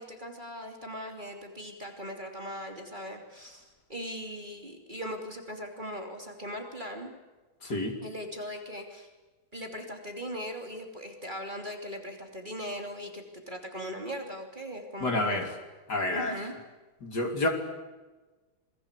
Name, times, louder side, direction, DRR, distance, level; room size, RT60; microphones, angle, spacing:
voice 1, 0.0-7.1 8.0-9.1 9.5-15.5 16.1-16.5, equal, 20° right, 3 dB, 3.1 m, -39 dB
voice 2, 7.6-8.0 15.0-15.5 15.9-16.3 17.0-17.5, left 2 dB, 50° left, 4 dB, 3.6 m, -28 dB
27.0 x 21.5 x 8.3 m, 1.2 s
omnidirectional pair, 2.2 m